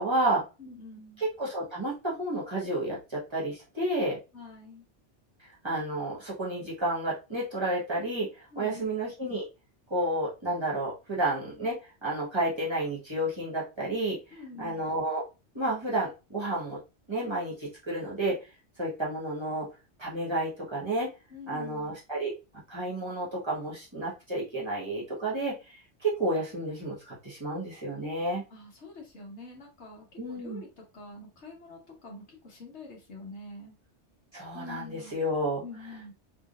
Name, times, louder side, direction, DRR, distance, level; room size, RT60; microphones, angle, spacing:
voice 1, 0.0-0.4 1.2-4.2 5.6-9.5 9.9-15.2 15.5-16.8 17.1-18.4 18.8-19.7 20.0-21.1 21.5-22.3 22.7-28.4 30.2-30.6 34.3-35.6, right 1 dB, 25° right, 1.5 m, -31 dB
voice 2, 0.6-1.2 4.3-4.8 8.5-8.9 14.3-14.8 21.3-22.0 28.5-30.7 30.9-33.7 34.5-35.2 35.6-36.1, left 3 dB, 70° left, 1.5 m, -46 dB
3.7 x 3.3 x 2.5 m
omnidirectional pair, 1.2 m